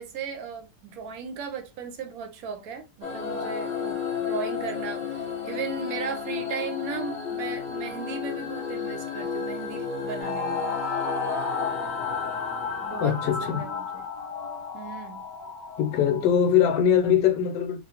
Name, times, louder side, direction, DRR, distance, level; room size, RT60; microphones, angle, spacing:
voice 1, 0.0-10.6 12.8-14.0 14.7-15.2, right 5 dB, 70° right, 0.9 m, -36 dB
sound 1, 3.0-13.9, left 6 dB, 55° left, 0.6 m, -33 dB
sound 2, 10.2-16.3, left 5 dB, 30° left, 1.0 m, -32 dB
voice 2, 13.0-13.7 15.8-17.8, left 9 dB, 80° left, 1.2 m, -22 dB
2.9 x 2.5 x 2.8 m
omnidirectional pair, 1.9 m